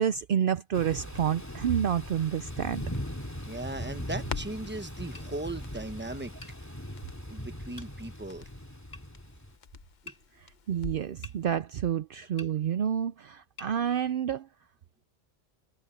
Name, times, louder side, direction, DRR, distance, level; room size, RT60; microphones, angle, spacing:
voice 1, 0.0-2.8 10.7-14.5, right 9 dB, 60° right, 0.7 m, -29 dB
Thunder / Rain, 0.7-9.5, equal, 15° left, 2.3 m, -40 dB
Crackle, 1.4-11.2 11.5-11.6, left 6 dB, 50° left, 0.9 m, -46 dB
voice 2, 3.5-6.3 7.3-8.5 10.0-10.1, right 2 dB, 10° right, 1.1 m, -38 dB
sound 1, 4.1-4.3 5.1-5.3 6.4-6.6 7.8-7.9 8.9-9.1 10.1-10.2 11.2-11.4 12.4-12.5 13.6-13.7, left 3 dB, 70° left, 4.7 m, -47 dB
omnidirectional pair, 1.1 m